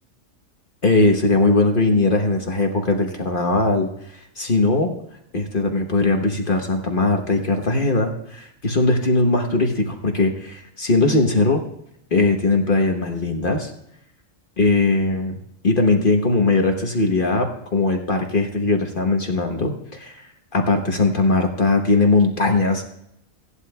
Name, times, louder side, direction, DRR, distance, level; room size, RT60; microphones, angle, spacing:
voice 1, 0.8-3.9 4.4-4.9 5.3-11.6 12.1-13.7 14.6-15.4 15.6-20.2 20.5-22.8, left 2 dB, 45° left, 3 dB, 1.1 m, -19 dB
17.0 x 11.0 x 2.3 m, 0.76 s
omnidirectional pair, 1.4 m